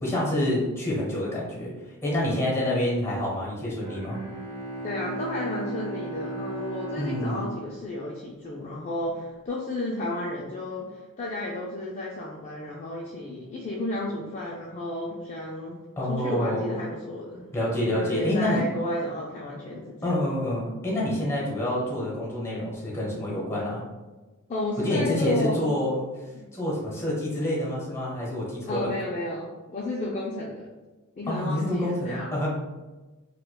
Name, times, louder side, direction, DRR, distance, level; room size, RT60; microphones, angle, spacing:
voice 1, 0.0-1.7 2.0-4.2 7.0-7.4 16.0-16.8 17.5-18.6 20.0-23.8 24.8-26.0 26.5-28.9 31.3-32.5, left 1 dB, 10° left, -4 dB, 1.0 m, -27 dB
Bowed string instrument, 3.8-8.7, right 2 dB, 20° right, 0.7 m, -36 dB
voice 2, 4.8-15.8 16.1-17.5 17.9-20.1 24.5-25.7 26.3-26.5 28.7-30.7 31.2-32.3, left 1 dB, 30° left, -4 dB, 0.4 m, -32 dB
4.6 x 2.2 x 2.2 m, 1.2 s
head